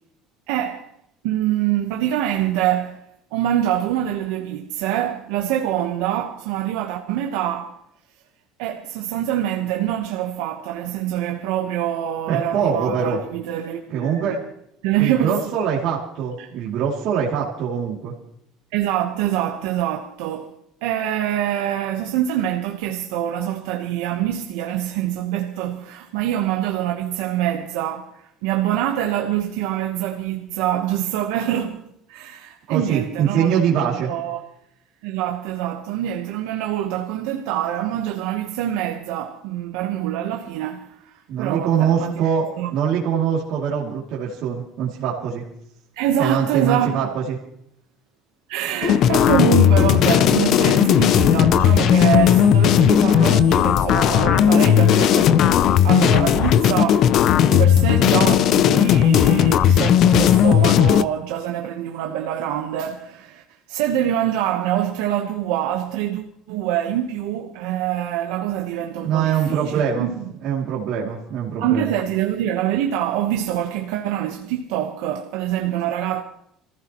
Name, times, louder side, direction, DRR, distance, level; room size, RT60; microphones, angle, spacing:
voice 1, 0.5-0.9 1.2-3.1 3.3-7.8 8.6-14.4 14.8-15.5 16.4-16.5 18.7-20.5 20.8-31.8 32.1-34.4 35.0-42.1 42.6-42.7 46.0-47.0 48.5-70.3 71.6-76.2, right 11 dB, 90° right, 1.2 m, -25 dB
voice 2, 12.3-13.2 13.9-14.4 15.0-18.1 32.7-34.1 41.3-45.4 46.2-47.4 69.0-70.1 70.4-71.9, right 7 dB, 60° right, 2.7 m, -23 dB
sound 1, 48.8-61.0, left 10 dB, 50° left, 0.5 m, -15 dB
26.0 x 15.5 x 3.1 m
cardioid pair, 145°, 0 cm